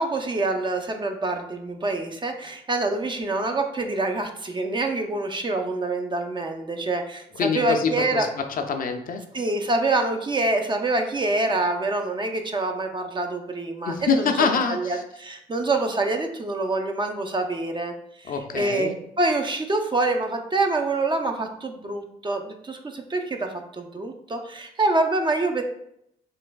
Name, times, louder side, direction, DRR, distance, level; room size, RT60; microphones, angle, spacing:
voice 1, 0.0-8.3 9.3-14.3 14.7-25.6, right 2 dB, 30° right, 5 dB, 0.5 m, -26 dB
voice 2, 7.3-9.2 13.8-15.0 18.2-19.0, left 5 dB, 55° left, 6 dB, 0.5 m, -25 dB
3.2 x 3.2 x 2.2 m, 0.75 s
supercardioid pair, 55°, 17 cm